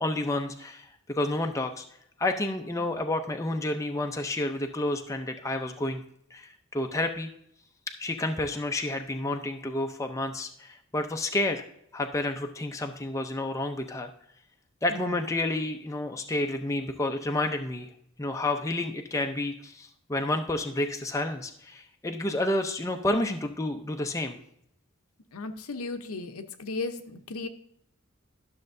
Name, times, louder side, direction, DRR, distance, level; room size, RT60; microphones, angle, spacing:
voice 1, 0.0-1.8 2.2-6.0 6.3-7.3 8.0-11.6 11.9-14.1 14.8-17.9 18.2-24.4, left 2 dB, 15° left, 4 dB, 0.5 m, -30 dB
voice 2, 25.3-27.5, left 3 dB, 85° left, 7 dB, 0.8 m, -36 dB
12.0 x 6.5 x 2.6 m, 0.72 s
head